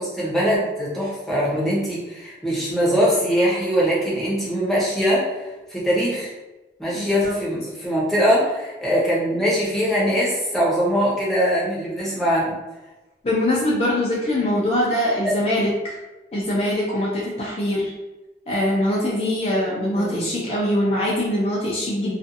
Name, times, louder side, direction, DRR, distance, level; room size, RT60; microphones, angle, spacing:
voice 1, 0.0-5.4 5.7-6.3 6.8-12.5 19.9-20.3, equal, ahead, -7 dB, 0.7 m, -22 dB
voice 2, 6.9-7.3 13.2-16.0 16.3-17.9 18.5-22.2, left 1 dB, 35° left, -5 dB, 0.4 m, -23 dB
2.5 x 2.3 x 2.6 m, 1.1 s
head